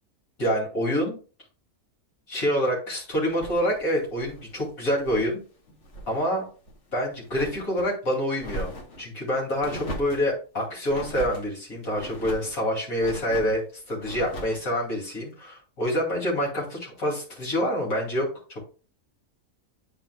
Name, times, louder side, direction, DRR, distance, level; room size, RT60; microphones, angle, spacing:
voice 1, 0.4-1.2 2.3-5.4 6.1-6.4 6.9-8.7 9.0-13.6 13.9-18.6, equal, 80° left, -2 dB, 2.9 m, -27 dB
sound 1, 3.3-5.4 5.7-6.2 6.6-7.9 8.4-9.0 9.6-10.3 10.9-11.5 11.9-12.6 13.0-13.6 14.0-14.6, equal, 55° left, 1.3 m, -39 dB
8.6 x 5.1 x 2.2 m, 0.36 s
omnidirectional pair, 1.5 m